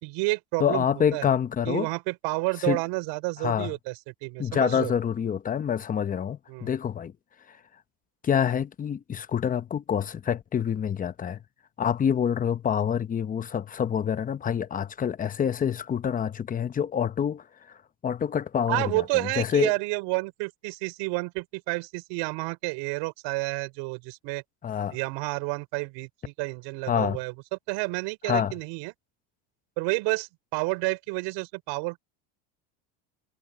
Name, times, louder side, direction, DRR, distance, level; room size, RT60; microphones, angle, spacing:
voice 1, 0.0-0.9 1.1-1.3 1.7-3.9 4.2-4.9 6.5-6.7 18.7-24.4 24.9-28.9 29.8-32.0, right 26 dB, 70° right, 5.3 m, -30 dB
voice 2, 0.6-1.9 2.6-2.8 3.4-3.7 4.4-7.1 7.5-7.6 8.2-11.4 11.8-17.8 18.0-19.7 24.6-25.0 26.9-27.2 28.2-28.5, left 8 dB, 20° left, 0.8 m, -27 dB
cardioid pair, 145°, 44 cm